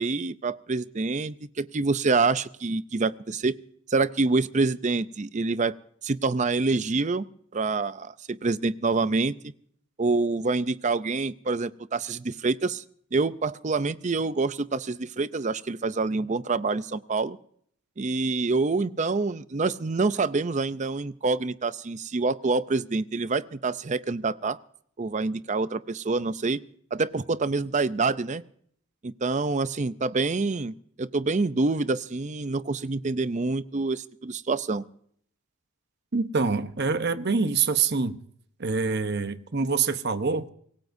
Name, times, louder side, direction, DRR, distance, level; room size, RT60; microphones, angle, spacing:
voice 1, 0.0-3.5 3.9-5.8 6.0-7.2 7.5-9.4 10.0-12.8 13.1-17.4 18.0-24.6 25.0-26.6 26.9-28.4 29.0-34.8, right 3 dB, 35° right, 0.5 m, -26 dB
voice 2, 36.1-38.2 38.6-40.5, right 5 dB, 50° right, 0.9 m, -25 dB
25.0 x 18.0 x 2.7 m
head